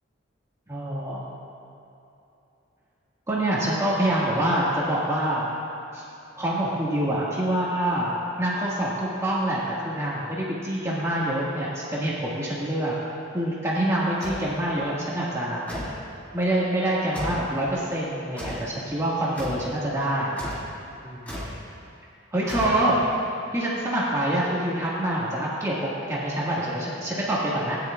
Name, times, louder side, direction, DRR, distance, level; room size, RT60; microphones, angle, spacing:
voice 1, 0.7-1.3 3.3-5.5 5.9-6.0 6.4-8.1 8.4-12.9 13.3-15.7 16.3-20.4 21.0-21.4 22.3-23.0 23.5-27.8, right 1 dB, 15° right, -7 dB, 1.5 m, -26 dB
sound 1, 14.2-14.5 15.7-16.1 17.1-17.5 18.4-18.7 19.4-19.7 20.4-20.7 21.3-21.6 22.5-23.1, equal, 10° left, 1.8 m, -34 dB
17.5 x 10.0 x 2.3 m, 2.9 s
head